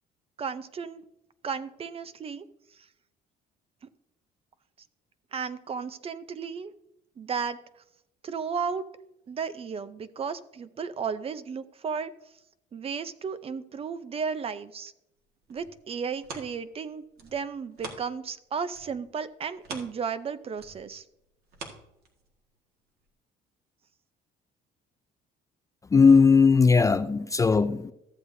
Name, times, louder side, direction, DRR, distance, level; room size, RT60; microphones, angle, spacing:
voice 1, 0.4-1.0 1.4-2.5 5.3-6.7 7.2-7.6 8.2-8.9 9.3-12.1 12.7-14.9 15.5-21.0, right 6 dB, 35° right, 0.6 m, -34 dB
sound 1, 15.2-18.4 18.7-22.5 23.0-23.1, right 4 dB, 70° right, 1.7 m, -45 dB
voice 2, 25.9-27.9, left 5 dB, 20° left, 0.3 m, -18 dB
14.0 x 7.9 x 2.7 m
cardioid pair, 110°, 17 cm